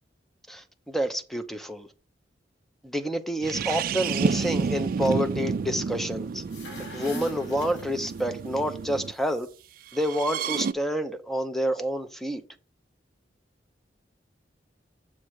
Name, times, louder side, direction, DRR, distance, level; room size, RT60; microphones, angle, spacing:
voice 1, 0.5-1.9 2.8-6.4 6.9-9.5 9.9-12.4, equal, ahead, 0.6 m, -28 dB
sound 1, 3.4-9.1 10.0-10.7, right 5 dB, 55° right, 0.3 m, -30 dB
sound 2, 6.3-8.5, left 1 dB, 90° left, 1.7 m, -40 dB
7.3 x 3.3 x 6.1 m
head